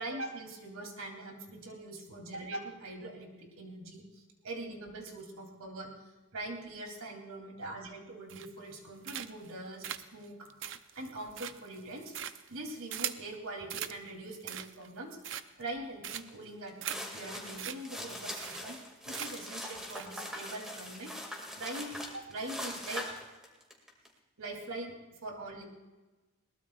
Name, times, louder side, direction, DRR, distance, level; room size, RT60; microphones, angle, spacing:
voice 1, 0.0-5.9 6.3-9.9 10.1-10.5 10.9-12.1 12.5-15.2 15.6-18.8 19.0-21.1 21.6-23.1 24.4-24.9 25.2-25.6, right 2 dB, 80° right, 1 dB, 3.0 m, -42 dB
sound 1, 8.3-8.7 9.0-9.5 9.8-13.3 13.7-14.0 14.3-14.9 15.2-15.7 16.0-16.4 16.8-17.0 17.3-17.4 17.6-17.8 18.0-18.1 18.4-18.8 19.1-19.5 19.9-20.1, right 10 dB, 60° right, 0.6 m, -40 dB
sound 2, 16.1-16.3 16.7-24.1, left 1 dB, 5° right, 2.1 m, -42 dB
22.0 x 19.5 x 2.4 m, 1.2 s
head